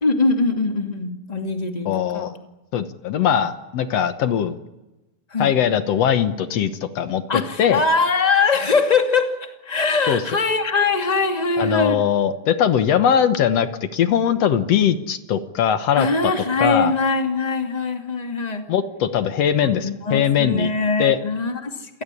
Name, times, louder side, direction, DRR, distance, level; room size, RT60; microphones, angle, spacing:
voice 1, 0.0-2.3 5.3-5.6 7.3-12.0 16.0-18.7 19.6-22.0, left 4 dB, 15° left, 5 dB, 1.8 m, -22 dB
voice 2, 1.8-2.3 2.7-4.6 5.4-7.8 10.1-10.2 11.6-16.3 16.6-16.9 18.7-20.7 21.0-21.2, left 9 dB, 70° left, 11 dB, 1.5 m, -20 dB
28.5 x 18.0 x 9.9 m, 1.0 s
omnidirectional pair, 4.4 m